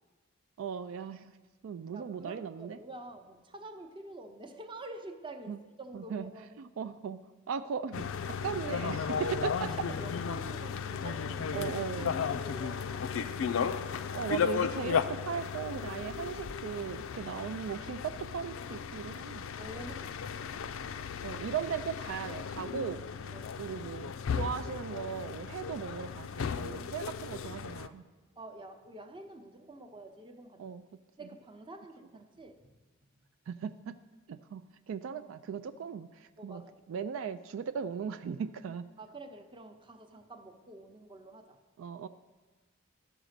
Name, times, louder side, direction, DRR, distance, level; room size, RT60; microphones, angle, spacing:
voice 1, 0.6-1.3 1.6-2.8 5.5-5.6 5.9-6.3 6.6-7.2 7.5-9.9 11.5-12.1 14.1-19.4 21.2-23.0 23.6-28.0 30.6-30.8 33.5-34.0 34.3-34.6 34.9-36.6 36.9-38.8 41.8-42.1, right 7 dB, 75° right, 11 dB, 0.3 m, -37 dB
voice 2, 1.9-6.6 9.1-9.4 9.7-11.7 12.0-13.4 19.6-20.4 23.1-23.5 28.4-30.8 31.2-32.6 36.4-36.7 39.0-41.6, right 2 dB, 25° right, 6 dB, 0.7 m, -48 dB
sound 1, 7.9-27.9, left 6 dB, 75° left, 0.4 m, -35 dB
12.5 x 5.0 x 6.5 m, 1.3 s
head